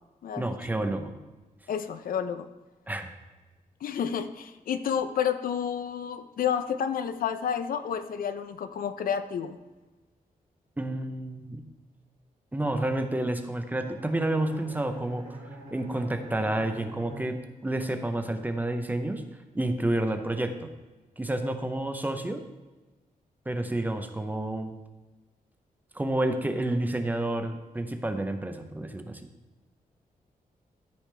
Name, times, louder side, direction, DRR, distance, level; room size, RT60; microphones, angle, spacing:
voice 1, 0.4-1.1 2.9-3.1 10.8-11.6 12.5-15.2 15.7-17.4 17.6-19.2 19.5-20.7 21.2-22.4 23.5-24.8 25.9-29.2, right 1 dB, 10° right, 7 dB, 0.6 m, -29 dB
voice 2, 1.7-2.5 3.8-9.6, left 8 dB, 75° left, 10 dB, 0.5 m, -30 dB
Bowed string instrument, 13.8-18.0, right 1 dB, 80° right, 2.4 m, -45 dB
13.5 x 5.0 x 3.3 m, 1.2 s
wide cardioid pair, 155°, 15 cm